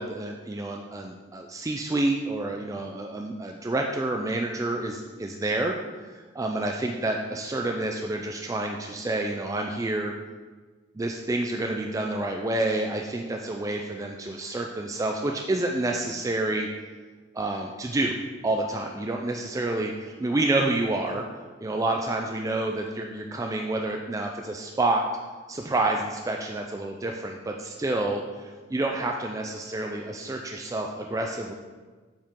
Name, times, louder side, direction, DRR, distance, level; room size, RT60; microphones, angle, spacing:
voice 1, 0.0-5.8 6.1-10.1 11.0-16.7 17.3-18.2 18.4-21.2 21.6-25.1 25.5-31.5, right 2 dB, 15° right, 2 dB, 0.3 m, -28 dB
7.4 x 4.7 x 3.6 m, 1.4 s
head